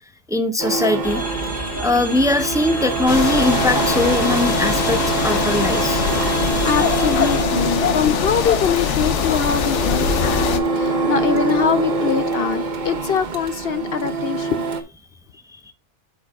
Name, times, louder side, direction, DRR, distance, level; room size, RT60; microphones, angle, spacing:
voice 1, 0.3-1.5 1.8-6.0 15.5-15.6, left 2 dB, 5° right, 0.8 m, -21 dB
Printer, 0.6-14.8, right 4 dB, 40° right, 1.2 m, -24 dB
sound 1, 1.0-7.4, right 1 dB, 15° left, 1.7 m, -30 dB
sound 2, 3.1-10.6, left 7 dB, 75° left, 1.1 m, -22 dB
voice 2, 6.6-14.7, left 7 dB, 60° left, 0.8 m, -23 dB
12.5 x 5.2 x 2.4 m
omnidirectional pair, 1.2 m